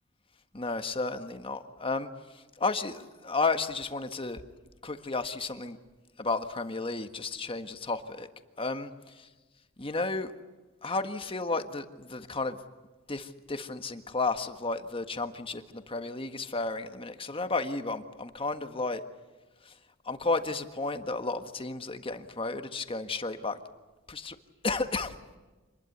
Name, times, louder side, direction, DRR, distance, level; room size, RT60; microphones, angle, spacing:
voice 1, 0.5-4.4 4.8-5.8 6.2-8.3 8.6-8.9 9.8-10.3 10.8-12.6 13.1-19.0 19.6-19.8 20.0-23.6 24.1-24.4 24.6-25.1, left 3 dB, 25° left, 8 dB, 1.5 m, -32 dB
27.0 x 21.0 x 8.0 m, 1.2 s
head